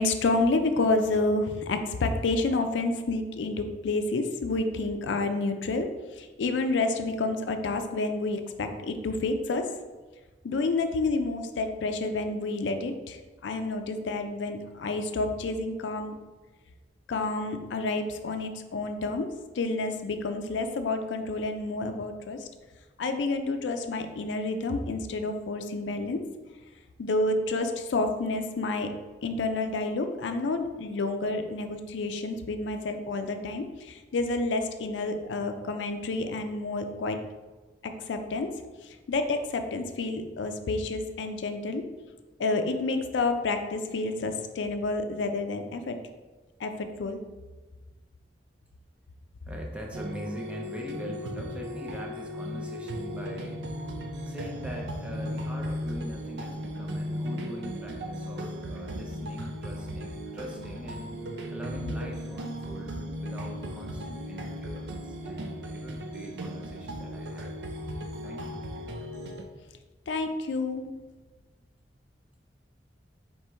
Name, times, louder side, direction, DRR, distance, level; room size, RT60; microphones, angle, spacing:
voice 1, 0.0-5.9 6.2-9.7 10.4-16.1 17.1-19.3 19.6-22.5 23.0-26.2 27.0-28.9 29.2-37.2 37.8-38.5 38.8-41.8 42.4-46.0 46.6-47.2 70.1-70.9, left 3 dB, 90° left, 7 dB, 0.4 m, -29 dB
voice 2, 49.5-53.6 54.2-61.1 61.4-67.9 68.2-68.7, equal, 5° right, -1 dB, 0.5 m, -42 dB
sound 1, 49.9-69.4, equal, 75° right, 0.5 m, -36 dB
4.3 x 2.9 x 3.4 m, 1.3 s
head